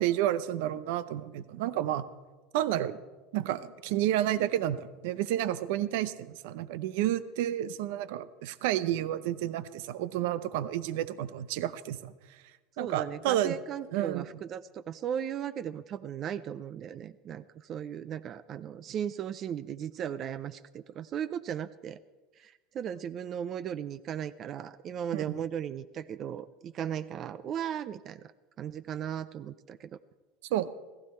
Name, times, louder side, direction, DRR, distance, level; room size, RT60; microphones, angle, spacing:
voice 1, 0.0-2.0 2.5-3.0 3.3-12.1 12.8-13.6 13.9-14.2 25.1-25.4 30.5-30.7, right 12 dB, 75° right, 15 dB, 0.6 m, -30 dB
voice 2, 12.8-22.0 22.4-28.2 28.6-30.0, right 9 dB, 40° right, 15 dB, 0.4 m, -37 dB
15.5 x 15.0 x 4.3 m, 1.3 s
supercardioid pair, 135°, 0 cm